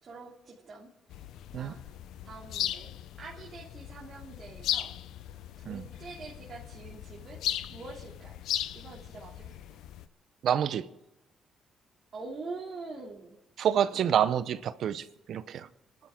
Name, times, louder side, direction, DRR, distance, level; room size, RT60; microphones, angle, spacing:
voice 1, 0.0-1.2 1.5-1.8 2.2-2.9 3.2-4.9 5.7-8.4 8.7-9.6 12.1-13.4, right 3 dB, 50° right, 2.8 m, -45 dB
sound 1, 1.1-10.1, left 11 dB, 85° left, 0.6 m, -37 dB
voice 2, 10.4-10.8 13.6-15.7, right 9 dB, 70° right, 0.8 m, -28 dB
27.5 x 12.0 x 3.7 m
cardioid pair, 90°, 0 cm